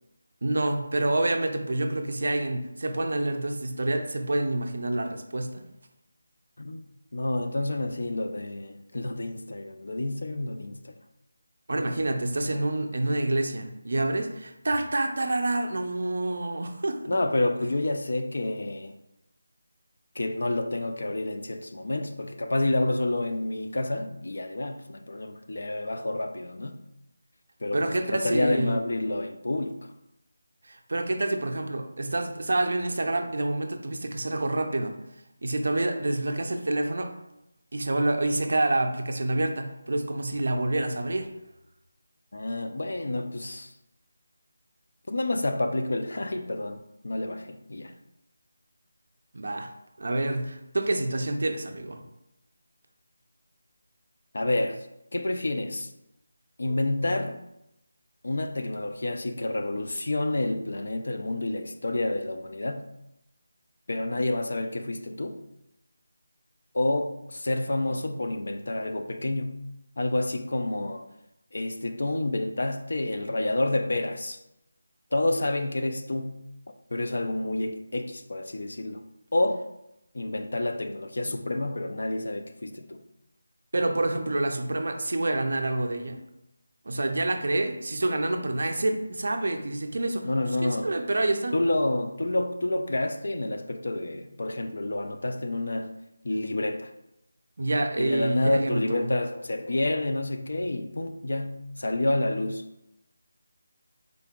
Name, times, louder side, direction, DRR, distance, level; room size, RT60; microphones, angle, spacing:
voice 1, 0.4-5.6 11.7-17.0 27.7-28.8 30.6-34.9 35.4-37.1 37.7-41.3 49.3-49.7 50.0-52.0 83.7-86.2 86.9-90.3 90.6-91.6 97.6-99.2, right 2 dB, 50° right, 0.4 m, -27 dB
voice 2, 7.1-11.0 12.5-12.6 17.1-19.0 20.2-26.8 27.6-29.9 42.3-43.7 45.1-47.9 54.3-54.8 55.1-55.9 56.6-57.5 58.2-62.9 63.9-65.4 66.7-69.6 70.0-71.1 71.5-74.4 75.1-76.4 76.9-79.0 79.3-79.7 80.1-83.0 90.2-90.9 91.5-95.9 96.2-96.9 98.0-102.6, left 2 dB, 50° left, 0.3 m, -29 dB
3.8 x 2.8 x 3.5 m
figure-of-eight pair, 180°, 0 cm